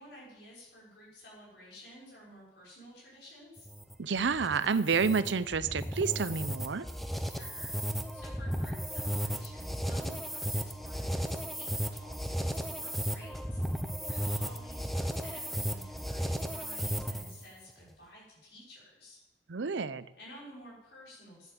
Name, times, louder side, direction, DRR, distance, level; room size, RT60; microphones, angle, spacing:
voice 1, 0.0-3.7 7.2-19.2 20.1-21.5, equal, 65° left, -6 dB, 5.8 m, -53 dB
sound 1, 3.6-17.4, equal, ahead, 0.7 m, -35 dB
voice 2, 4.0-6.9 19.5-20.1, right 5 dB, 85° right, 15 dB, 0.6 m, -29 dB
11.0 x 9.4 x 7.3 m, 0.96 s
head